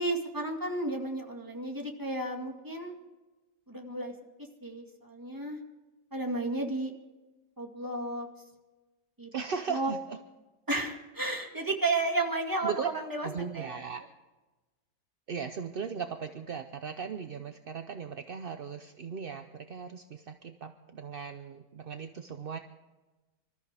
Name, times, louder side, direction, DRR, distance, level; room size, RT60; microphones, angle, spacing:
voice 1, 0.0-3.0 3.7-4.1 4.6-5.6 6.1-6.9 7.6-8.3 9.2-9.3 9.7-9.9 10.7-13.3 13.5-13.7, right 2 dB, 10° right, 1 dB, 2.0 m, -32 dB
voice 2, 9.3-10.2 12.6-12.9 13.2-14.0 15.3-22.6, right 6 dB, 50° right, 7 dB, 0.7 m, -37 dB
25.5 x 13.5 x 3.5 m, 1.2 s
omnidirectional pair, 1.7 m